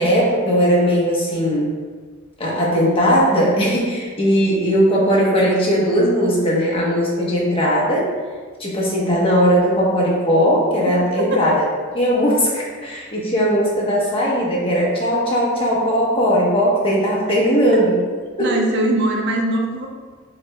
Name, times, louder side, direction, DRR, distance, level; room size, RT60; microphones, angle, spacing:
voice 1, 0.0-1.8 2.4-8.1 8.6-11.6 11.9-17.9 18.4-18.6, equal, 25° left, -4 dB, 0.9 m, -18 dB
voice 2, 10.8-11.5 18.4-19.9, right 1 dB, 55° right, 2 dB, 0.5 m, -21 dB
6.9 x 3.0 x 2.2 m, 1.5 s
head